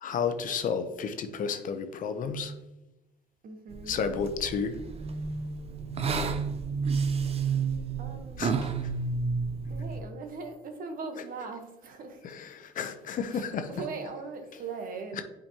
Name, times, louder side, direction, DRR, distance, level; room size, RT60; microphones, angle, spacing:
voice 1, 0.0-2.5 3.9-4.7 8.4-8.5 12.2-13.7 15.1-15.2, left 6 dB, 50° left, 8 dB, 0.8 m, -31 dB
voice 2, 3.4-4.0 7.4-7.6 8.0-8.4 9.7-12.4 13.3-15.2, right 4 dB, 55° right, 5 dB, 1.2 m, -40 dB
sound 1, 3.7-10.0, right 5 dB, 35° right, 0.6 m, -31 dB
8.7 x 5.1 x 2.9 m, 0.98 s
cardioid pair, 110°, 17 cm